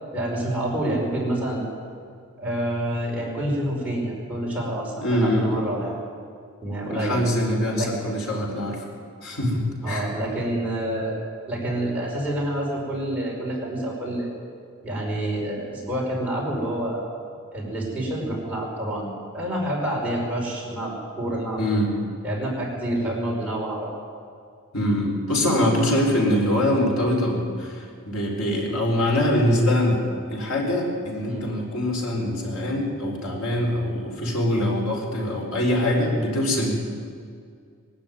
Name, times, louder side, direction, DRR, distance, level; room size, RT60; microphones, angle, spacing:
voice 1, 0.1-1.6 2.4-5.9 6.6-7.2 7.7-7.9 9.8-11.1 11.5-14.3 14.8-17.1 17.5-19.1 19.3-21.6 22.2-23.9 31.2-31.4, right 1 dB, 5° right, -5 dB, 5.3 m, -28 dB
voice 2, 4.9-5.6 6.9-8.8 9.2-10.1 21.6-21.9 24.7-36.8, left 1 dB, 75° left, 0 dB, 4.6 m, -23 dB
22.0 x 13.0 x 9.5 m, 2.2 s
head